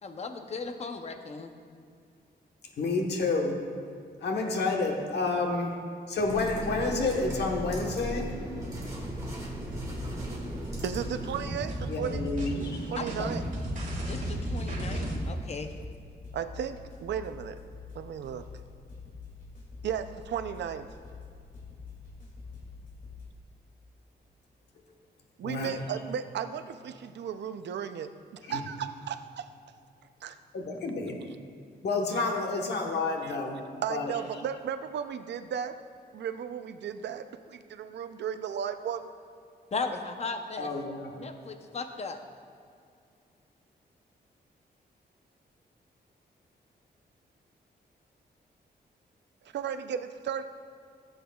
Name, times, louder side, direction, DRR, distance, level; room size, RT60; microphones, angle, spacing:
voice 1, 0.0-1.5 13.0-13.3 14.1-15.7 39.7-40.7 41.2-42.2, left 4 dB, 40° left, 6 dB, 0.7 m, -36 dB
voice 2, 2.8-3.6 4.2-5.7 6.1-8.3 11.9-12.8 25.4-25.9 28.4-28.6 30.5-31.2 31.8-33.6 33.9-34.4 40.6-41.1, left 3 dB, 75° left, 1 dB, 1.2 m, -30 dB
sound 1, 6.1-11.5, right 1 dB, 20° right, 1.9 m, -37 dB
sound 2, 8.5-23.2, left 4 dB, 55° left, 2.4 m, -47 dB
sound 3, 9.6-15.2, right 1 dB, 50° right, 2.1 m, -34 dB
voice 3, 10.8-12.2 12.9-13.4 16.3-17.6 18.0-18.4 19.8-20.9 25.4-28.1 28.5-29.5 30.2-30.3 33.8-35.7 36.1-39.1 49.5-50.4, right 8 dB, 85° right, 9 dB, 0.5 m, -35 dB
16.0 x 7.9 x 2.3 m, 2.3 s
wide cardioid pair, 140°, 18 cm